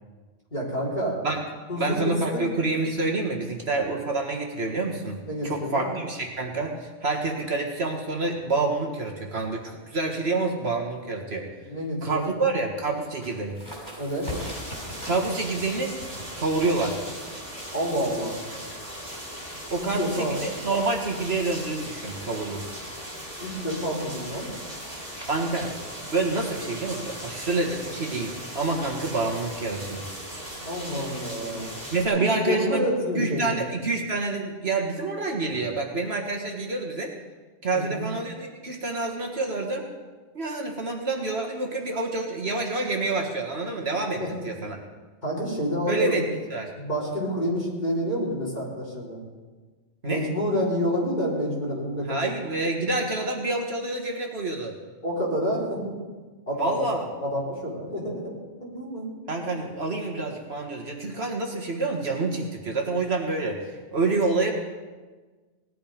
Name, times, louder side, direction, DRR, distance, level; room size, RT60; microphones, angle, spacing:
voice 1, 0.5-1.2 1.7-2.4 5.2-5.9 11.6-12.4 14.0-14.3 17.7-18.4 19.8-20.4 23.4-24.5 30.6-31.7 32.1-33.6 37.7-38.0 44.2-44.3 45.2-46.2 46.8-49.2 50.0-52.3 52.8-52.9 55.0-55.9 56.5-56.8 57.2-58.3 58.6-59.1, equal, 40° left, -5 dB, 4.3 m, -28 dB
voice 2, 1.8-11.5 12.0-13.6 15.1-16.0 16.4-17.0 19.7-22.6 25.3-25.7 26.0-30.1 31.9-32.9 33.2-37.1 37.6-39.9 40.3-44.8 45.9-46.3 46.5-46.7 50.0-50.2 52.1-54.8 56.6-57.1 59.3-64.5, right 3 dB, 60° right, 1 dB, 1.9 m, -27 dB
sound 1, 13.0-18.4, left 1 dB, 65° left, 5.8 m, -41 dB
sound 2, 14.2-32.1, equal, 30° right, 4.5 m, -38 dB
18.5 x 11.5 x 5.1 m, 1.4 s
omnidirectional pair, 1.2 m